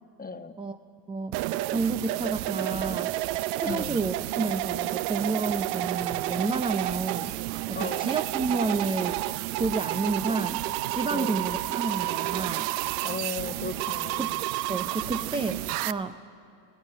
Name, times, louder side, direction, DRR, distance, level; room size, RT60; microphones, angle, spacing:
voice 1, 0.2-0.6 3.7-4.0 7.7-8.1 11.1-11.4 13.0-14.4, left 4 dB, 20° left, 9 dB, 1.1 m, -36 dB
voice 2, 1.1-1.4 1.7-3.1 3.6-7.3 7.7-9.2 9.6-12.7 14.2-14.3 14.7-16.2, right 3 dB, 10° right, 8 dB, 0.5 m, -30 dB
sound 1, 1.3-15.9, right 17 dB, 75° right, 0.7 m, -30 dB
19.0 x 16.5 x 9.1 m, 2.5 s
supercardioid pair, 90°, 49 cm